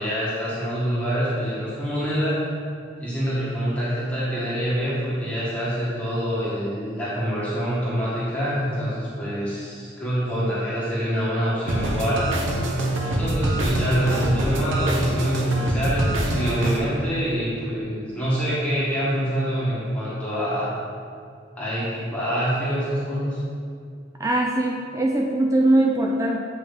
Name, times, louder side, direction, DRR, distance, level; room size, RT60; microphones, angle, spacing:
voice 1, 0.0-2.4 3.0-12.2 13.0-20.7 21.6-23.4, equal, 5° left, -11 dB, 1.7 m, -26 dB
sound 1, 11.7-16.8, right 1 dB, 85° right, 0.8 m, -24 dB
voice 2, 24.2-26.4, right 1 dB, 15° right, 0 dB, 0.3 m, -21 dB
8.5 x 5.2 x 3.5 m, 2.3 s
head